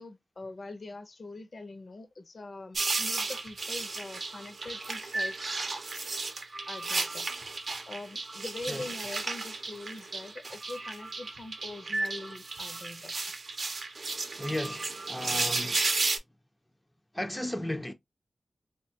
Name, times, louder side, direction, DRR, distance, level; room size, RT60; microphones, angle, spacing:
voice 1, 0.0-5.5 6.7-7.3 7.9-13.1, left 2 dB, 55° left, 0.6 m, -43 dB
sound 1, 2.7-16.2, right 3 dB, 65° right, 0.6 m, -33 dB
voice 2, 14.4-15.8 17.1-17.9, left 1 dB, 10° left, 0.4 m, -35 dB
3.2 x 2.2 x 2.7 m
wide cardioid pair, 70°, 0 cm